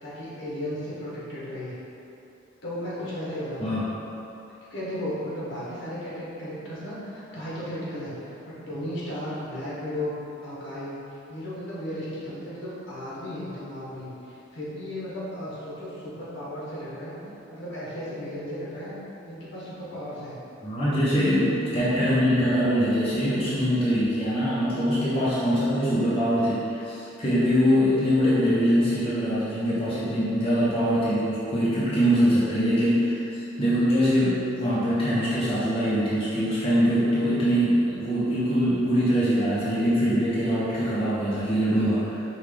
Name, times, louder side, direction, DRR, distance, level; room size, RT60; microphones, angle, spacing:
voice 1, 0.0-1.8 2.6-3.9 4.7-10.1 10.4-17.2 17.5-18.9 19.2-20.4 21.1-21.5, equal, 65° left, -8 dB, 1.1 m, -35 dB
voice 2, 20.6-42.2, equal, 25° left, -11 dB, 0.6 m, -23 dB
5.4 x 2.3 x 3.3 m, 2.9 s
head